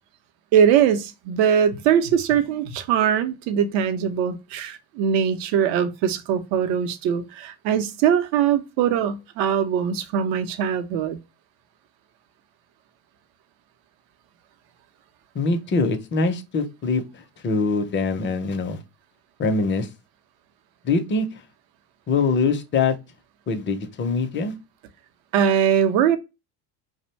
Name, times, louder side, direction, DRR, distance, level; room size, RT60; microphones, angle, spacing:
voice 1, 0.5-11.2 25.3-26.2, right 8 dB, 65° right, 0.7 m, -21 dB
voice 2, 15.3-17.0 17.4-18.8 19.4-19.9 20.8-21.4 22.1-23.0 23.5-24.5, left 4 dB, 25° left, 0.5 m, -23 dB
2.5 x 2.1 x 3.0 m
supercardioid pair, 85°, 48 cm